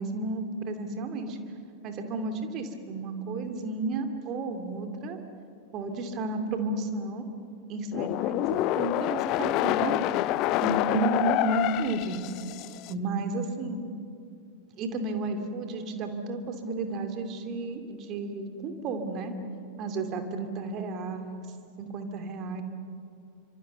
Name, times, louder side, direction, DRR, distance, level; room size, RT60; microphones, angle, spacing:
voice 1, 0.0-1.4 1.8-5.2 5.7-7.3 7.7-9.9 10.6-12.2 12.9-13.8 14.7-19.4 19.8-21.4 21.8-22.6, right 3 dB, 35° right, 6 dB, 2.7 m, -32 dB
sound 1, 7.9-12.9, left 16 dB, 40° left, 0.5 m, -27 dB
28.0 x 25.5 x 6.9 m, 2.6 s
figure-of-eight pair, 90°, 0 cm